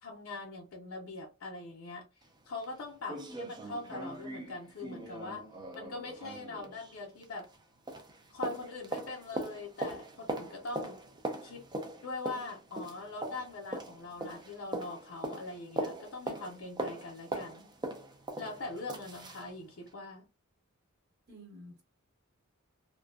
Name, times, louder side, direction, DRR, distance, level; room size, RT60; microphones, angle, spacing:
voice 1, 0.0-2.1 2.5-3.2 3.7-5.5 5.7-7.5 8.3-11.0 11.4-11.6 12.0-17.7 18.4-20.3, left 2 dB, 70° left, 0.6 m, -42 dB
sound 1, 2.2-2.3 2.6-2.7 3.1-7.6 7.9-19.5 19.9-20.0, right 1 dB, 20° right, 0.4 m, -41 dB
voice 2, 3.1-3.5 3.8-3.9 21.3-21.8, equal, 50° right, 1.4 m, -51 dB
2.4 x 2.2 x 2.3 m
head